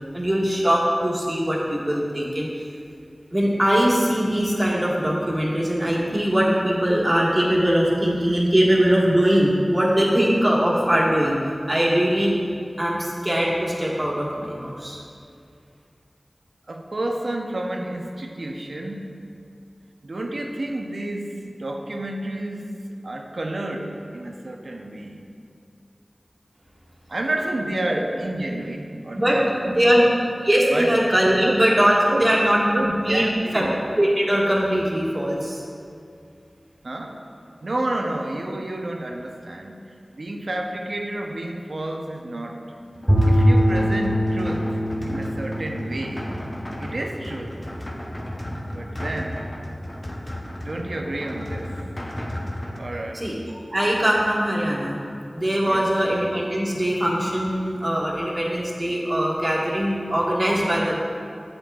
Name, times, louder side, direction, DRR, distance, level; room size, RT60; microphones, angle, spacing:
voice 1, 0.1-2.5 3.3-11.4 11.7-12.3 12.8-15.0 28.0-28.1 29.2-29.4 29.6-30.0 30.4-33.2 33.5-33.6 34.0-35.6 53.1-53.3 53.7-55.0 55.3-61.0, equal, 35° right, -5 dB, 1.5 m, -21 dB
voice 2, 16.7-19.2 20.0-22.8 23.0-25.2 27.1-30.0 30.7-30.9 31.4-31.6 32.1-32.3 32.7-33.8 36.8-37.2 37.6-42.8 43.2-46.3 46.8-47.7 48.7-49.5 50.6-51.8 52.7-53.2 55.6-55.9, right 1 dB, 75° right, 1 dB, 0.7 m, -30 dB
sound 1, 42.9-52.8, left 1 dB, 40° left, 0.7 m, -34 dB
Bowed string instrument, 43.1-47.3, equal, 15° right, 1.7 m, -22 dB
8.0 x 7.6 x 2.4 m, 2.4 s
wide cardioid pair, 45°, 0 cm